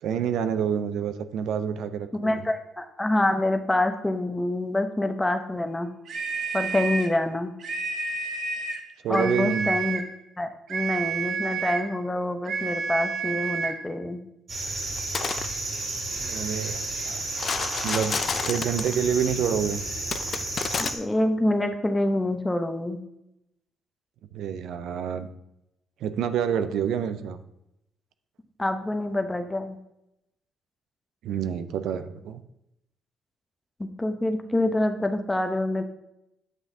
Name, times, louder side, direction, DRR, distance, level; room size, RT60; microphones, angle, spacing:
voice 1, 0.0-2.4 9.0-9.7 16.2-16.8 17.0-17.2 17.8-18.2 18.5-19.8 24.3-25.3 26.0-27.4 31.2-32.4, right 8 dB, 80° right, 10 dB, 0.5 m, -27 dB
voice 2, 2.2-6.0 6.5-7.5 9.1-10.1 10.4-14.2 20.8-23.0 28.6-29.8 33.8-35.8, left 1 dB, 15° left, 7 dB, 0.7 m, -26 dB
sound 1, 6.1-7.2 7.6-8.8 9.1-10.1 10.7-11.9 12.5-13.8, right 5 dB, 65° right, 0.8 m, -30 dB
sound 2, 14.5-21.0, right 2 dB, 45° right, 2.6 m, -32 dB
sound 3, 15.0-15.5 17.3-19.0 20.1-20.9, left 6 dB, 50° left, 0.4 m, -30 dB
9.0 x 5.9 x 2.7 m, 0.85 s
cardioid pair, 90°, 0 cm